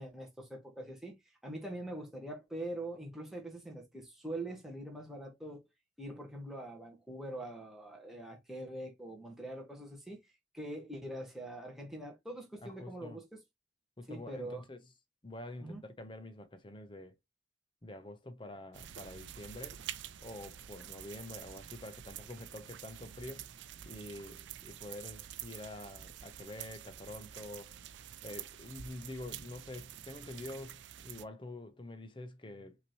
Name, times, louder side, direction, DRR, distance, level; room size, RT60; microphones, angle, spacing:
voice 1, 0.0-5.6 6.0-10.2 10.5-13.4 14.1-14.6 15.6-15.8, right 1 dB, ahead, 1.4 m, -43 dB
voice 2, 12.6-13.2 14.0-14.8 15.2-17.1 17.8-19.8 20.2-23.5 23.8-27.8 28.2-32.8, left 1 dB, 25° left, 0.8 m, -47 dB
sound 1, 18.7-31.3, right 11 dB, 70° right, 0.4 m, -48 dB
5.8 x 2.9 x 3.0 m
head